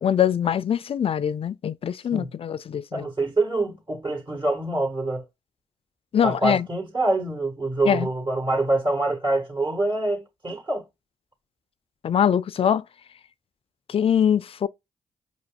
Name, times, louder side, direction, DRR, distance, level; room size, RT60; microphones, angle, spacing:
voice 1, 0.0-3.1 6.1-6.7 7.9-8.1 12.0-12.8 13.9-14.7, left 8 dB, 45° left, 0.4 m, -23 dB
voice 2, 2.9-5.2 6.2-10.8, right 2 dB, 35° right, 1.3 m, -25 dB
5.0 x 2.5 x 2.3 m
supercardioid pair, 45°, 14 cm